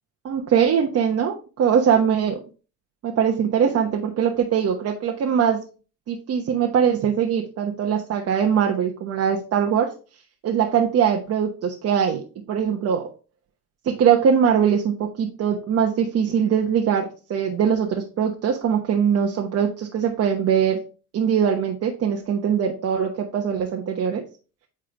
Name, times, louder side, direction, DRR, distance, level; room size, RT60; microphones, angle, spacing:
voice 1, 0.2-2.4 3.0-5.6 6.1-9.9 10.4-12.2 12.5-13.1 13.8-20.8 21.1-24.2, right 8 dB, 55° right, 1 dB, 1.3 m, -21 dB
8.9 x 3.7 x 4.6 m, 0.34 s
cardioid pair, 105°, 29 cm